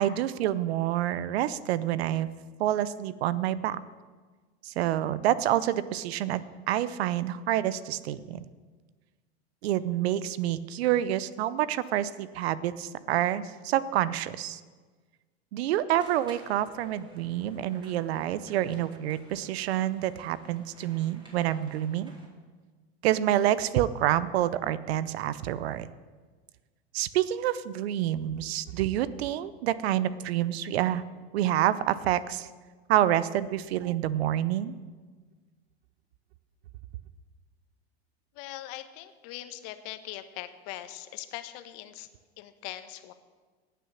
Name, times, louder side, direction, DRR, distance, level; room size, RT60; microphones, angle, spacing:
voice 1, 0.0-2.3 2.6-3.8 4.6-6.4 6.7-8.4 9.6-14.6 15.5-22.1 23.0-25.9 26.9-31.0 31.3-32.5 32.9-34.8, right 12 dB, 70° right, 17 dB, 0.7 m, -28 dB
sound 1, 15.9-22.3, right 1 dB, 15° right, 4.1 m, -53 dB
voice 2, 38.3-42.1 42.4-43.1, left 14 dB, 55° left, 10 dB, 1.1 m, -41 dB
18.0 x 6.8 x 6.4 m, 1.4 s
hypercardioid pair, 90°, 32 cm